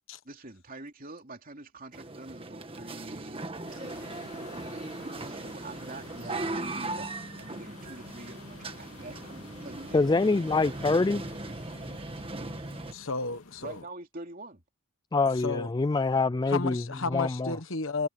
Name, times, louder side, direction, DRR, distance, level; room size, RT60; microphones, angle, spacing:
voice 1, 0.2-4.0 5.2-7.1 7.4-10.0 13.6-14.6, right 2 dB, 40° right, 3.1 m, -45 dB
sound 1, 1.9-12.9, right 2 dB, 25° right, 1.6 m, -38 dB
sound 2, 3.6-13.8, left 3 dB, 85° left, 2.8 m, -51 dB
voice 2, 9.9-11.2 15.1-16.8 17.1-17.5, left 3 dB, 20° left, 0.3 m, -25 dB
voice 3, 12.9-13.8 15.4-15.7 16.5-18.1, left 3 dB, 60° left, 1.3 m, -33 dB
head